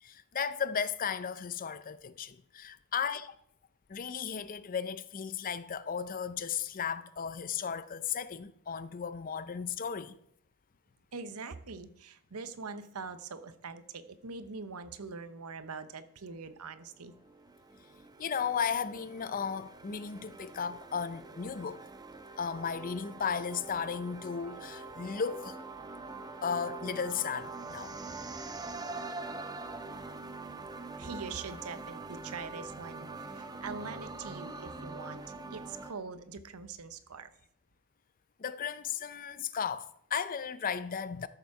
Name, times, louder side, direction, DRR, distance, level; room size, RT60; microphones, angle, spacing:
voice 1, 0.0-3.3 3.9-10.2 18.2-21.8 22.4-25.6 26.4-28.0 38.4-41.3, left 6 dB, 40° left, 0.5 m, -35 dB
voice 2, 11.1-17.1 31.0-35.2 35.5-37.3, right 4 dB, 75° right, 0.8 m, -43 dB
sound 1, 16.6-35.9, right 3 dB, 15° right, 0.6 m, -44 dB
13.0 x 6.9 x 4.8 m
head